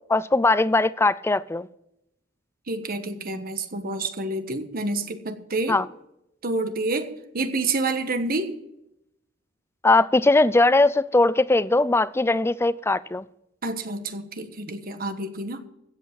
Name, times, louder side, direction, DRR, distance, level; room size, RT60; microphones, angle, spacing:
voice 1, 0.1-1.7 5.7-5.8 9.8-13.3, left 2 dB, 15° left, 0.4 m, -20 dB
voice 2, 2.7-5.8 6.4-8.5 13.6-15.6, right 2 dB, 50° right, 1.3 m, -28 dB
15.5 x 8.3 x 6.0 m
head